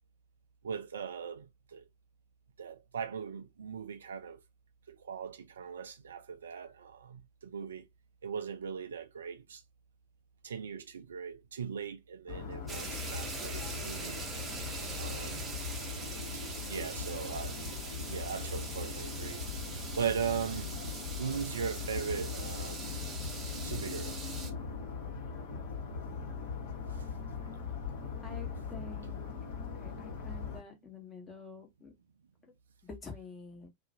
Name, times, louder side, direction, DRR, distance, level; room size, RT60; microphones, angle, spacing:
voice 1, 0.6-1.9 2.6-4.4 4.9-7.8 8.2-9.6 10.4-14.2 15.0-15.6 16.7-17.6 18.1-19.5 20.0-20.7 21.2-22.9 23.6-24.2 26.9-27.1 27.4-27.5, right 7 dB, 65° right, 0.3 m, -39 dB
sound 1, 12.3-30.6, left 5 dB, 55° left, 0.8 m, -40 dB
sound 2, 12.7-24.5, right 4 dB, 15° right, 0.7 m, -43 dB
voice 2, 28.2-29.4 29.8-31.9 32.4-32.5 32.8-33.7, left 4 dB, 20° left, 0.9 m, -48 dB
2.4 x 2.0 x 2.5 m
figure-of-eight pair, 90°, 0 cm